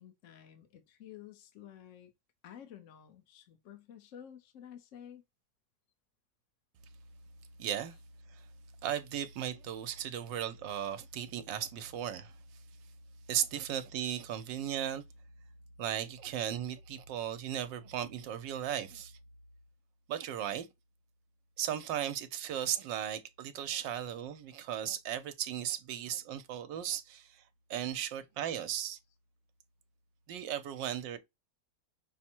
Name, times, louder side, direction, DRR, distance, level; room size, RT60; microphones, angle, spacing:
voice 1, 0.0-2.1 2.4-5.2 27.1-27.2, left 10 dB, 55° left, 0.9 m, -52 dB
voice 2, 7.6-8.0 8.3-8.4 8.8-12.3 13.3-15.0 15.8-19.2 20.1-20.7 21.6-27.4 27.7-29.0 30.3-31.2, right 10 dB, 80° right, 1.3 m, -36 dB
5.8 x 2.1 x 4.3 m
omnidirectional pair, 2.0 m